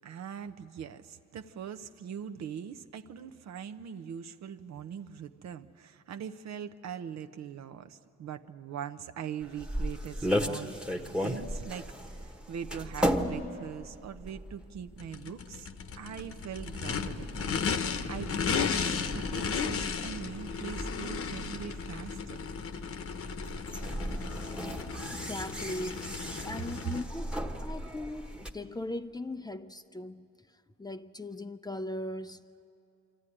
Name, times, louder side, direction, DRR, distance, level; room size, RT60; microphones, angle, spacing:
voice 1, 0.0-15.7 16.0-22.4 26.4-26.5, right 8 dB, 65° right, 0.8 m, -42 dB
sound 1, 9.4-28.5, equal, 5° right, 1.2 m, -37 dB
Race car auto racing / Idling / Accelerating revving vroom, 15.0-27.0, left 6 dB, 50° left, 1.0 m, -35 dB
voice 2, 25.1-26.1 26.4-30.3 30.8-32.4, left 1 dB, 15° left, 0.5 m, -39 dB
24.5 x 14.0 x 9.9 m
cardioid pair, 90°, 30 cm